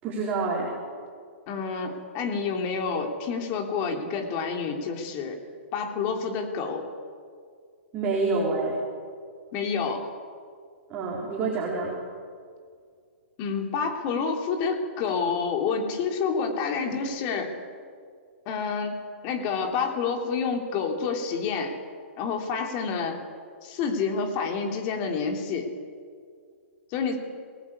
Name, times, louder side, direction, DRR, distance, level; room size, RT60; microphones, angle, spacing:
voice 1, 0.0-0.7 7.9-8.8 10.9-12.0, right 3 dB, 20° right, -3 dB, 4.2 m, -27 dB
voice 2, 1.5-5.4 5.7-6.9 9.5-10.1 13.4-17.6 18.4-21.8 22.2-23.2 23.6-25.7 26.9-27.2, left 5 dB, 30° left, 3 dB, 3.1 m, -28 dB
23.5 x 19.0 x 8.6 m, 2.1 s
hypercardioid pair, 160°, 7 cm